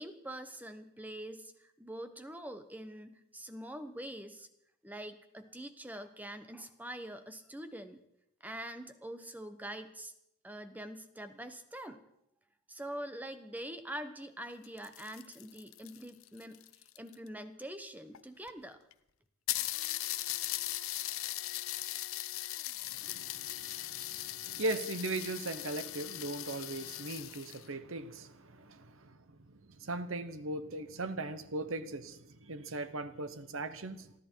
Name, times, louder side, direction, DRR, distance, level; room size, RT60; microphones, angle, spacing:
voice 1, 0.0-4.5 4.8-8.0 8.4-10.1 10.4-12.0 12.7-16.6 17.0-18.8, right 1 dB, 5° right, 1.0 m, -44 dB
sound 1, 14.5-17.3 18.1-18.2 18.5-18.6 18.9-19.0 19.5-27.7, left 15 dB, 65° left, 0.7 m, -39 dB
voice 2, 22.9-29.2 29.8-34.1, right 2 dB, 60° right, 1.0 m, -39 dB
29.5 x 11.0 x 4.6 m
head